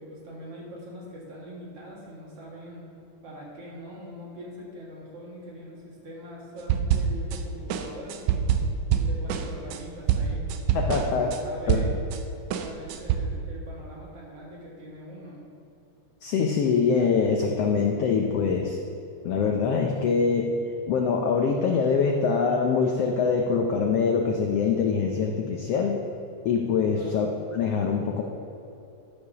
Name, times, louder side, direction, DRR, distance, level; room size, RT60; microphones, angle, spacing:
voice 1, 0.0-2.8 3.2-8.5 8.9-10.4 10.9-12.0 12.5-15.4 26.9-27.2, equal, 55° right, -4 dB, 2.6 m, -42 dB
sound 1, 6.7-7.4 7.7-12.2 12.5-13.2, right 8 dB, 75° right, 1.9 m, -25 dB
voice 2, 10.7-11.3 11.7-11.9 16.2-18.8 19.2-20.5 20.9-26.0 26.4-27.3 27.5-28.2, left 5 dB, 80° left, 1 dB, 1.4 m, -24 dB
12.5 x 5.2 x 6.0 m, 2.8 s
omnidirectional pair, 3.6 m